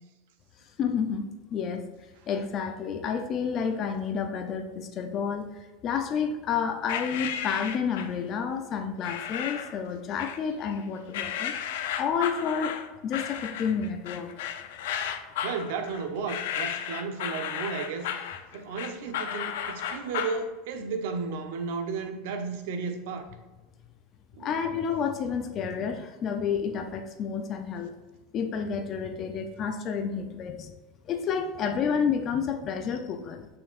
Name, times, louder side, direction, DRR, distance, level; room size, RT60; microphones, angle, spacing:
voice 1, 0.8-1.2 1.5-11.5 12.0-12.8 13.0-14.3 24.4-28.0 28.3-30.7 31.0-33.5, left 6 dB, 35° left, 6 dB, 0.6 m, -30 dB
sound 1, 6.9-8.2 9.0-9.8 10.2-10.8 11.1-20.4, left 9 dB, 80° left, 0.6 m, -34 dB
voice 2, 15.4-18.1 18.5-23.3 24.3-24.5 30.1-30.2, right 5 dB, 70° right, 6 dB, 0.9 m, -33 dB
8.6 x 5.7 x 2.6 m, 1.2 s
supercardioid pair, 145°, 0 cm